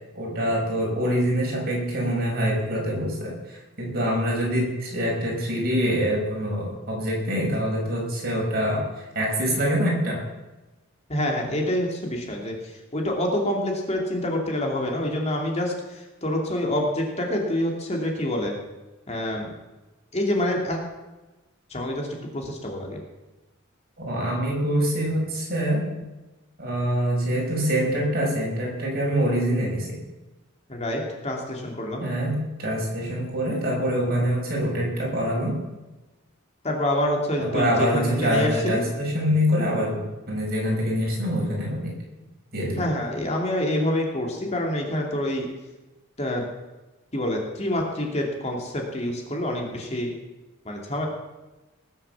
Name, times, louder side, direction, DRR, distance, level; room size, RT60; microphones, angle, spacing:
voice 1, 0.1-8.9 9.1-10.2 24.0-25.9 26.6-30.0 32.0-35.6 37.4-41.9 42.5-42.9, equal, 50° right, -2 dB, 6.1 m, -25 dB
voice 2, 11.1-18.5 19.1-19.5 20.1-20.8 21.7-22.1 22.3-23.0 30.7-32.1 36.6-38.8 42.8-45.5 46.2-46.4 47.1-50.1 50.6-51.1, left 1 dB, 35° left, 1 dB, 2.6 m, -27 dB
20.0 x 7.5 x 7.1 m, 1.1 s
head